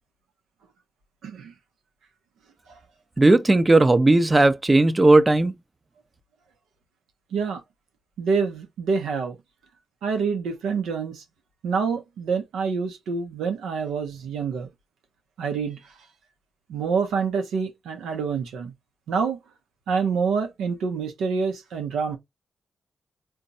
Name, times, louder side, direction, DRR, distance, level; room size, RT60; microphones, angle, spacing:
voice 1, 1.2-1.5 7.3-7.6 8.2-9.4 10.0-11.2 11.6-14.7 15.4-15.8 16.7-18.7 19.1-19.4 19.9-22.2, right 5 dB, 80° right, 0.7 m, -26 dB
voice 2, 3.2-5.5, right 2 dB, 30° right, 0.6 m, -16 dB
4.0 x 2.2 x 2.6 m
supercardioid pair, 40°, 0 cm